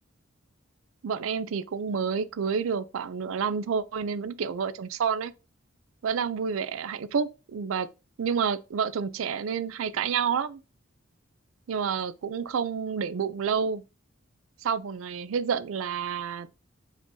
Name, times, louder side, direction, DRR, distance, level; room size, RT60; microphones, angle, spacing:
voice 1, 1.0-5.3 6.0-7.9 8.2-10.6 11.7-13.8 14.6-16.5, right 6 dB, 85° right, 0.4 m, -29 dB
5.0 x 3.7 x 2.7 m
head